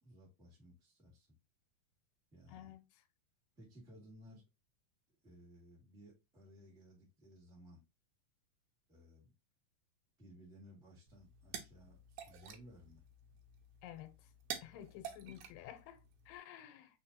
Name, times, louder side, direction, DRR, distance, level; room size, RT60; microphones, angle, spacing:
voice 1, 0.0-1.3 2.3-2.7 3.5-4.4 5.2-7.8 8.9-9.3 10.2-13.0, equal, ahead, 1.1 m, -59 dB
voice 2, 2.5-3.0 13.8-14.3 14.6-17.0, left 11 dB, 85° left, 2.2 m, -53 dB
sound 1, 11.1-16.4, right 8 dB, 75° right, 2.1 m, -50 dB
4.2 x 4.0 x 2.7 m
omnidirectional pair, 3.8 m